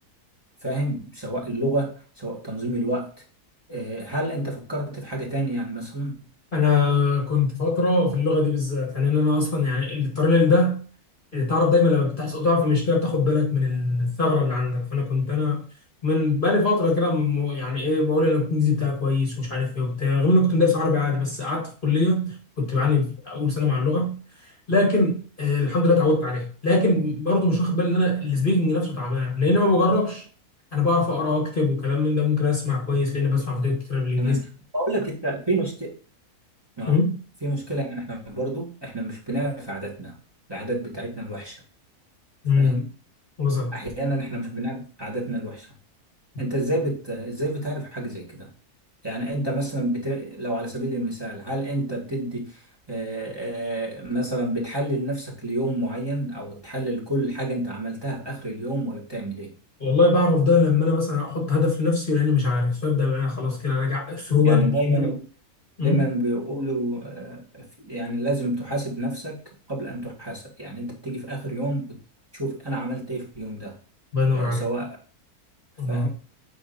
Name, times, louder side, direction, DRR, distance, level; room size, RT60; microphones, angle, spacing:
voice 1, 0.6-3.1 3.7-6.3 34.2-34.4 34.7-35.9 36.8-36.9 37.4-40.1 40.5-41.6 42.6-42.9 43.7-45.7 46.4-48.5 49.0-59.5 64.4-65.2 65.8-69.4 69.7-72.0 72.3-73.7 74.3-75.0 75.9-76.1, right 1 dB, 15° right, 2.0 m, -29 dB
voice 2, 6.5-10.8 11.3-15.7 16.0-30.2 30.7-34.5 36.9-37.2 42.4-42.8 43.4-43.8 59.8-65.1 65.8-66.0 74.1-74.6 75.8-76.1, left 3 dB, 35° left, 1.5 m, -22 dB
8.2 x 5.1 x 2.7 m
omnidirectional pair, 1.6 m